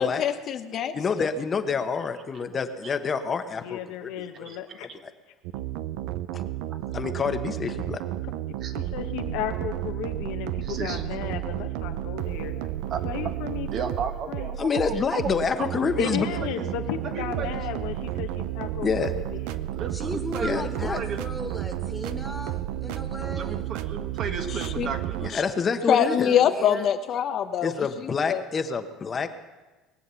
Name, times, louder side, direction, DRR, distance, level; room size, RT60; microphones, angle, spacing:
voice 1, 0.0-1.3 24.8-24.9 25.3-25.4 25.9-27.7 28.3-28.4, left 9 dB, 50° left, 7 dB, 0.8 m, -24 dB
voice 2, 0.9-4.5 6.9-8.0 14.6-16.3 18.8-19.1 20.4-21.0 25.2-26.3 27.6-29.3, left 5 dB, 30° left, 8 dB, 1.1 m, -27 dB
voice 3, 3.6-4.9 8.7-12.7 13.0-13.7 14.3-14.6 16.0-19.6, left 10 dB, 80° left, 5 dB, 1.3 m, -34 dB
sound 1, 5.4-25.3, right 13 dB, 80° right, 0.6 m, -32 dB
voice 4, 10.6-11.0 12.9-13.0 13.7-15.7 16.4-16.7 17.0-17.6 19.7-21.2 23.4-25.4, right 5 dB, 50° right, 6 dB, 1.6 m, -34 dB
voice 5, 19.9-23.7 26.0-26.9, equal, ahead, 3 dB, 1.9 m, -37 dB
21.0 x 7.8 x 7.0 m, 1.2 s
supercardioid pair, 105°, 0 cm